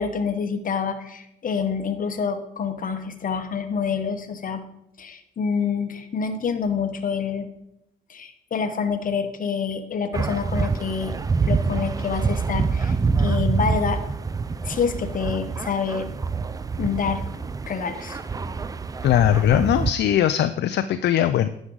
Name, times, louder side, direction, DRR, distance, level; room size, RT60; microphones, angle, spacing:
voice 1, 0.0-4.6 5.0-7.5 8.1-11.1 11.4-14.0 14.6-16.1 16.8-17.2 17.7-18.2, left 6 dB, 45° left, 8 dB, 0.9 m, -27 dB
sound 1, 10.1-19.9, right 4 dB, 20° right, 0.3 m, -26 dB
voice 2, 19.0-21.5, left 11 dB, 60° left, 11 dB, 0.4 m, -20 dB
9.7 x 6.1 x 3.9 m, 0.80 s
cardioid pair, 90°, 20 cm